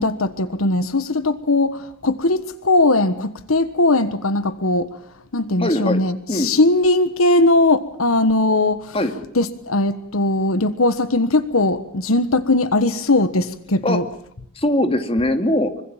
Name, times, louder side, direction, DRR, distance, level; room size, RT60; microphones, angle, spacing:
voice 1, 0.0-5.0 5.3-9.0 9.3-14.1, left 2 dB, 75° left, 12 dB, 1.4 m, -19 dB
voice 2, 5.6-6.0 6.3-6.5 8.9-9.1 13.8-14.0 14.6-15.7, left 1 dB, 25° left, 7 dB, 2.7 m, -20 dB
26.0 x 24.5 x 7.4 m, 0.68 s
head